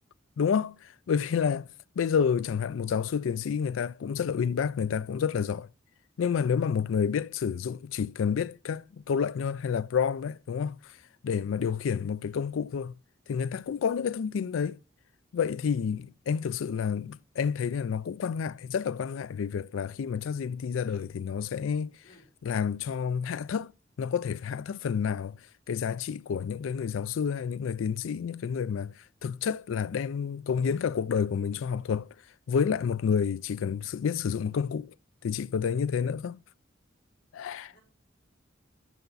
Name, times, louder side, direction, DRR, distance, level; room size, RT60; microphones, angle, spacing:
voice 1, 0.4-1.7 2.0-5.7 6.2-11.0 11.2-12.9 13.3-14.8 15.3-21.9 22.4-23.7 24.0-25.4 25.7-32.1 32.5-34.9 35.2-36.4 37.3-37.7, left 7 dB, 75° left, 0.4 m, -29 dB
voice 2, 20.8-21.1 22.0-22.3 37.7-37.8, equal, 45° left, 3.8 m, -57 dB
9.2 x 5.7 x 4.0 m
head